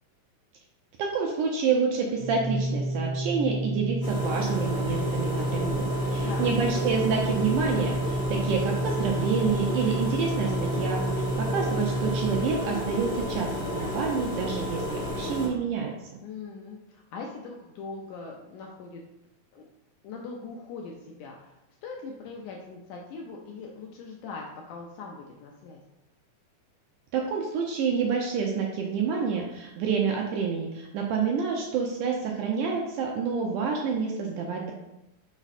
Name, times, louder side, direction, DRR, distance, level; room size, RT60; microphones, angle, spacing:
voice 1, 1.0-11.0 11.4-15.9 27.1-34.7, right 5 dB, 80° right, 0 dB, 1.9 m, -28 dB
Organ, 2.1-13.0, right 1 dB, 50° right, 0.9 m, -30 dB
sound 1, 4.0-15.5, left 1 dB, 50° left, 0.9 m, -32 dB
voice 2, 6.2-6.6 16.2-19.0 19.5-19.7 20.0-25.8, left 4 dB, 80° left, 0 dB, 1.9 m, -41 dB
6.1 x 4.4 x 4.1 m, 0.92 s
omnidirectional pair, 4.2 m